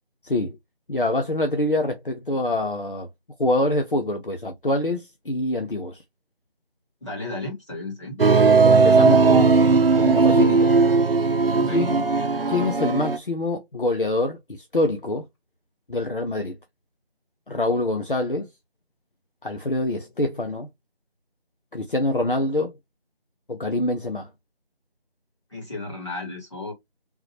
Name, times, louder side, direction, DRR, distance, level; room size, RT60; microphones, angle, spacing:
voice 1, 0.2-0.6 0.9-3.1 3.4-6.0 8.6-10.8 11.7-12.0 12.5-15.2 15.9-16.6 17.5-18.5 19.4-20.7 21.7-22.8 23.5-24.3, left 1 dB, 60° left, 0.8 m, -25 dB
voice 2, 7.0-8.2 11.5-11.9 25.5-26.7, left 2 dB, 30° left, 2.0 m, -33 dB
sound 1, 8.2-13.2, right 4 dB, 65° right, 0.7 m, -17 dB
3.8 x 3.0 x 2.8 m
figure-of-eight pair, 170°, 31 cm